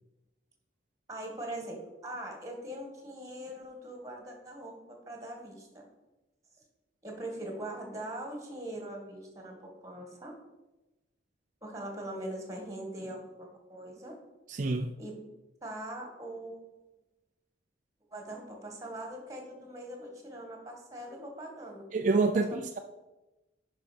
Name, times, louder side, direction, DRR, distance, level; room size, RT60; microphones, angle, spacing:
voice 1, 1.1-5.9 7.0-10.4 11.6-14.1 15.0-15.1 15.6-16.6 18.1-21.8 22.5-22.7, right 1 dB, 20° right, 2 dB, 1.9 m, -41 dB
voice 2, 14.5-15.0 21.9-22.8, right 3 dB, 40° right, 5 dB, 0.5 m, -27 dB
10.0 x 5.4 x 5.2 m, 1.0 s
head